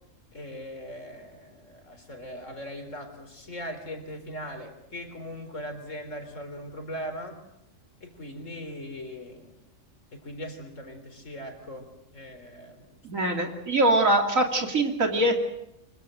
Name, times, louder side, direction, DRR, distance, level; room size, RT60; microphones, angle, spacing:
voice 1, 0.3-7.4 8.0-9.6 10.1-13.0, equal, 70° left, 6 dB, 4.4 m, -40 dB
voice 2, 13.0-15.3, right 1 dB, 85° right, 3 dB, 3.1 m, -23 dB
25.0 x 23.0 x 7.8 m, 0.83 s
omnidirectional pair, 1.4 m